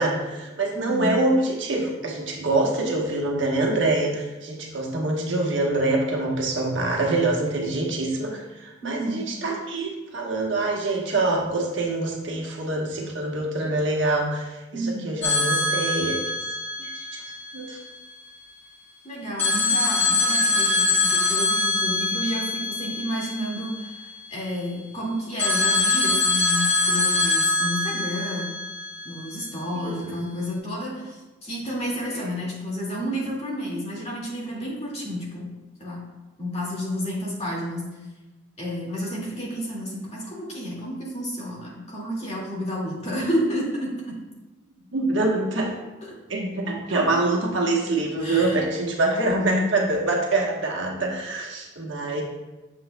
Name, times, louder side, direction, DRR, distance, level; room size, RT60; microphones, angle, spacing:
voice 1, 0.0-16.2 16.8-17.2 17.5-17.8 29.7-30.1 32.1-32.3 44.9-45.7 46.3-52.2, right 2 dB, 65° right, -1 dB, 1.2 m, -25 dB
voice 2, 0.7-1.2 8.8-9.3 14.7-15.1 19.0-28.6 29.0-35.5 35.8-36.0 36.4-37.9 38.6-44.2 48.2-48.6, equal, 30° left, -4 dB, 2.0 m, -30 dB
sound 1, 15.2-18.1 19.4-24.3 25.4-29.6, left 3 dB, 10° left, 1.3 m, -24 dB
8.5 x 6.8 x 2.2 m, 1.1 s
head